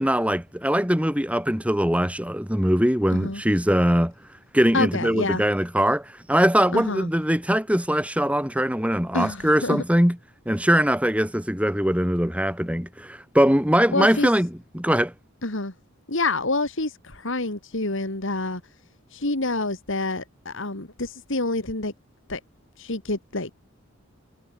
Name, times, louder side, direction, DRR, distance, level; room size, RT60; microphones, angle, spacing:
voice 1, 0.0-4.1 4.5-10.2 10.5-14.5 14.7-15.1, equal, 5° right, 3.6 m, -21 dB
voice 2, 3.1-3.4 4.7-5.4 6.7-7.1 9.1-9.8 13.9-14.3 15.4-15.7 16.1-18.6 19.1-21.9 22.3-22.4 22.8-23.5, left 2 dB, 60° left, 2.5 m, -27 dB
head